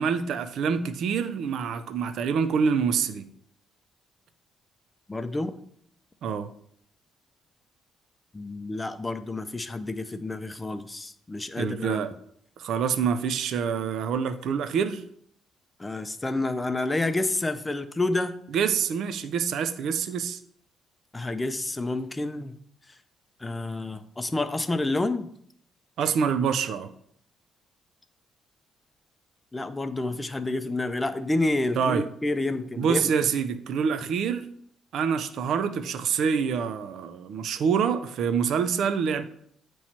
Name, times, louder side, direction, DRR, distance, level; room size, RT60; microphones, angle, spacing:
voice 1, 0.0-3.2 6.2-6.5 11.6-12.1 12.6-15.0 18.5-20.4 26.0-26.9 31.8-32.1 32.8-34.5 34.9-39.2, right 6 dB, 75° right, 12 dB, 0.5 m, -26 dB
voice 2, 5.1-5.6 8.3-12.0 15.8-18.4 21.1-22.5 23.4-25.3 29.5-33.1, left 2 dB, 20° left, 10 dB, 0.5 m, -29 dB
8.6 x 3.1 x 4.3 m, 0.67 s
cardioid pair, 90°, 0 cm